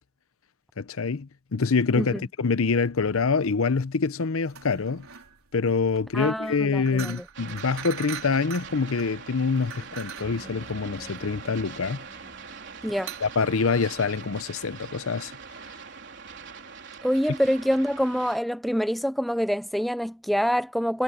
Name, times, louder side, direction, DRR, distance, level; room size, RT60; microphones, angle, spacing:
voice 1, 0.8-5.1 5.5-12.0 13.2-15.3, left 4 dB, 70° left, 0.7 m, -25 dB
sound 1, 4.5-14.4, right 8 dB, 75° right, 4.5 m, -43 dB
voice 2, 6.1-7.2 12.8-13.1 17.0-21.0, equal, ahead, 0.3 m, -26 dB
sound 2, 7.3-18.4, right 5 dB, 55° right, 4.1 m, -43 dB
sound 3, 10.2-13.8, equal, 25° left, 5.0 m, -50 dB
head